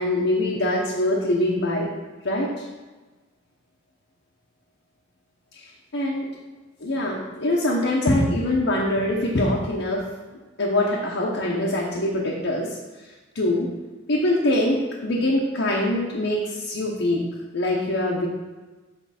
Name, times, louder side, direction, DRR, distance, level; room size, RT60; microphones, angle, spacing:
voice 1, 0.0-1.9 2.2-2.6 5.9-6.3 6.8-10.0 10.6-12.8 13.3-13.7 14.1-17.3 17.5-18.3, left 1 dB, 65° left, -3 dB, 0.9 m, -23 dB
8.6 x 4.5 x 4.2 m, 1.2 s
head